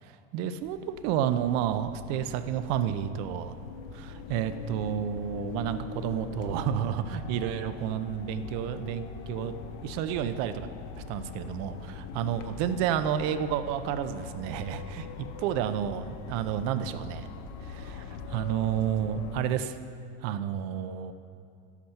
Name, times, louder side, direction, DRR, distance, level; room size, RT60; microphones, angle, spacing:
voice 1, 0.0-3.6 3.9-9.5 9.8-10.7 11.0-17.3 17.6-19.8 20.2-21.1, right 9 dB, 65° right, 11 dB, 0.7 m, -31 dB
sound 1, 0.6-19.4, left 5 dB, 65° left, 0.8 m, -42 dB
11.5 x 8.3 x 5.7 m, 2.4 s
supercardioid pair, 135°, 33 cm